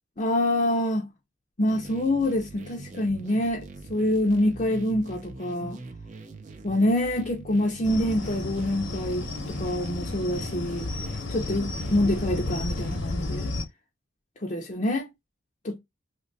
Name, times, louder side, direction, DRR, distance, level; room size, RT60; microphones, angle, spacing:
voice 1, 0.2-1.1 1.6-3.6 3.9-5.8 6.6-10.9 11.3-13.5 14.4-15.1 15.6-15.8, left 1 dB, 35° left, 0.5 m, -26 dB
sound 1, 1.7-13.0, right 3 dB, 35° right, 0.5 m, -43 dB
sound 2, 7.8-13.6, left 2 dB, 70° left, 0.8 m, -32 dB
2.8 x 2.2 x 3.8 m
head